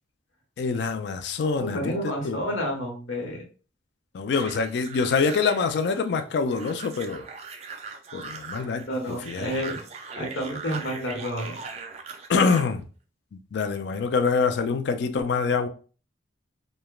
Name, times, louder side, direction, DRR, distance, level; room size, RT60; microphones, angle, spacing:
voice 1, 0.6-2.4 4.1-7.2 8.1-9.5 12.3-12.9 13.3-15.7, left 5 dB, 60° left, 0.3 m, -25 dB
voice 2, 1.4-3.4 8.9-9.8 10.2-11.5, equal, 80° left, 1.1 m, -30 dB
sound 1, 4.4-12.7, right 5 dB, 35° right, 0.3 m, -40 dB
3.1 x 2.1 x 2.3 m
head